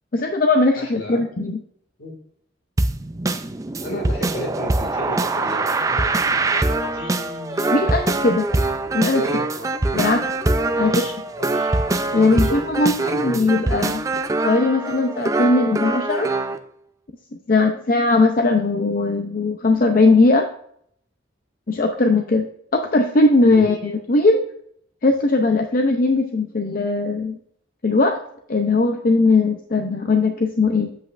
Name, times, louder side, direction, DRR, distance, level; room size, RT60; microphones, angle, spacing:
voice 1, 0.1-1.6 7.7-8.5 8.9-9.2 9.9-10.3 10.8-11.0 12.1-14.0 14.4-16.3 17.5-20.5 21.7-24.4 25.0-27.4 27.8-28.2 28.5-31.0, left 3 dB, 45° left, 4 dB, 0.5 m, -19 dB
voice 2, 0.7-1.2 2.0-2.1 3.8-8.1 9.1-9.7 10.6-12.6 12.8-13.6 23.5-23.7, left 1 dB, 65° left, 2 dB, 2.0 m, -34 dB
sound 1, 2.8-16.6, right 2 dB, 15° right, 0.3 m, -23 dB
8.1 x 7.6 x 2.5 m, 0.66 s
head